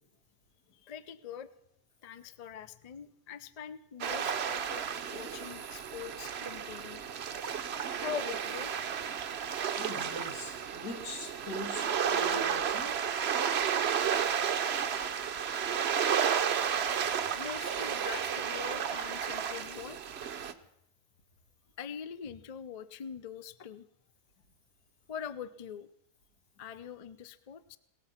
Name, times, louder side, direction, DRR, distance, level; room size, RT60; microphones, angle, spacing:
voice 1, 0.8-1.5 2.0-4.9 5.1-7.0 8.0-9.1 17.3-20.0 21.8-23.8 25.1-25.9 26.6-27.8, left 8 dB, 55° left, 14 dB, 0.4 m, -43 dB
sound 1, 4.0-20.5, right 8 dB, 50° right, 0.9 m, -32 dB
voice 2, 9.8-12.9, left 2 dB, 85° left, 4 dB, 2.7 m, -42 dB
18.0 x 14.0 x 5.7 m, 0.77 s
omnidirectional pair, 1.6 m